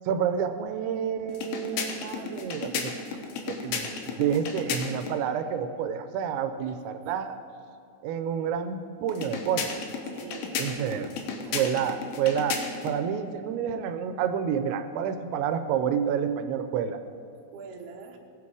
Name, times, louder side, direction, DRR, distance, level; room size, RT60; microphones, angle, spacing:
voice 1, 0.0-2.9 3.5-7.4 8.0-9.8 10.6-11.1 11.5-17.0, right 8 dB, 90° right, 8 dB, 3.0 m, -29 dB
sound 1, 1.3-5.2 9.1-13.0, left 5 dB, 75° left, 2.7 m, -34 dB
voice 2, 2.2-2.9 10.1-11.0 17.5-18.2, right 4 dB, 70° right, 1 dB, 2.9 m, -45 dB
18.5 x 8.4 x 4.8 m, 2.4 s
omnidirectional pair, 5.1 m